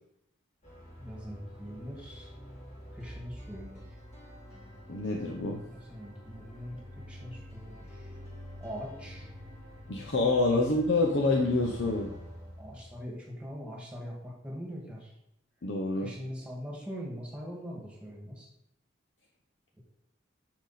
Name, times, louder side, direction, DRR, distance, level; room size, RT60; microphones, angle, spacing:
sound 1, 0.6-13.0, equal, 35° left, 1.9 m, -47 dB
voice 1, 1.0-2.3 2.9-3.8 5.6-6.8 7.1-8.2 8.6-9.3 12.6-15.1 16.0-18.5, equal, 5° right, -3 dB, 1.8 m, -42 dB
voice 2, 4.9-5.6 9.9-12.1 15.6-16.1, left 2 dB, 65° left, 1 dB, 0.8 m, -27 dB
6.6 x 6.0 x 4.2 m, 0.80 s
head